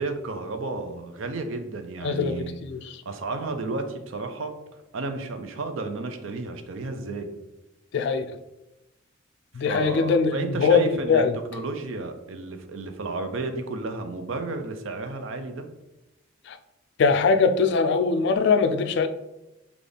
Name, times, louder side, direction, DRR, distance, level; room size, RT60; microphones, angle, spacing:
voice 1, 0.0-2.6 3.1-4.5 4.9-7.3 9.6-11.2 11.5-15.7, right 3 dB, 70° right, 7 dB, 0.5 m, -32 dB
voice 2, 2.0-3.0 7.9-8.3 9.6-11.3 16.5-16.6 17.0-19.1, left 5 dB, 55° left, 9 dB, 0.3 m, -22 dB
3.8 x 2.4 x 3.3 m, 0.95 s
head